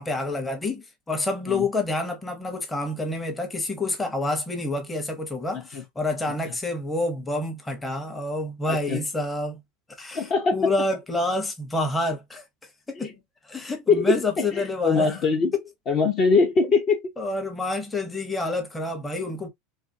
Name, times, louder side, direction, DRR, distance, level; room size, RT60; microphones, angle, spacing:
voice 1, 0.0-9.6 10.0-12.4 12.9-13.1 13.4-15.2 15.5-15.6 17.2-19.5, left 2 dB, 15° left, 0.8 m, -28 dB
voice 2, 8.7-9.1 10.1-10.7 12.9-13.1 13.9-15.5 15.9-17.0, left 4 dB, 45° left, 0.7 m, -22 dB
2.5 x 2.2 x 2.6 m
hypercardioid pair, 105°, 0 cm